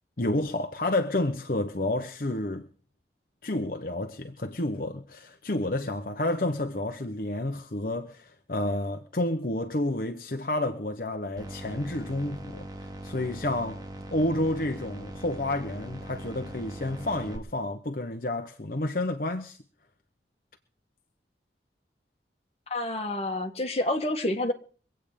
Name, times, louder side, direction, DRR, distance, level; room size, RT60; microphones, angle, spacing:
voice 1, 0.2-2.7 3.4-13.8 14.1-19.6, left 1 dB, 50° left, 0.9 m, -30 dB
sound 1, 11.4-17.4, right 1 dB, 20° right, 2.2 m, -41 dB
voice 2, 22.7-24.5, left 1 dB, 35° left, 1.8 m, -28 dB
24.0 x 8.9 x 5.2 m
head